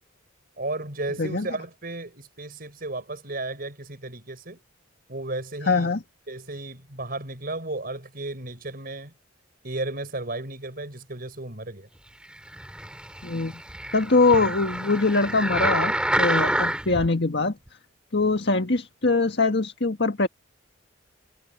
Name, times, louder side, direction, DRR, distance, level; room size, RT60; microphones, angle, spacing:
voice 1, 0.6-4.6 5.1-5.9 6.3-9.1 9.6-11.9, right 2 dB, 50° right, 5.5 m, -34 dB
voice 2, 5.7-6.0 13.2-13.6 13.9-17.5 18.1-20.3, left 3 dB, 60° left, 1.7 m, -22 dB
sound 1, 12.5-17.1 17.7-17.8, right 1 dB, 5° right, 4.7 m, -27 dB
head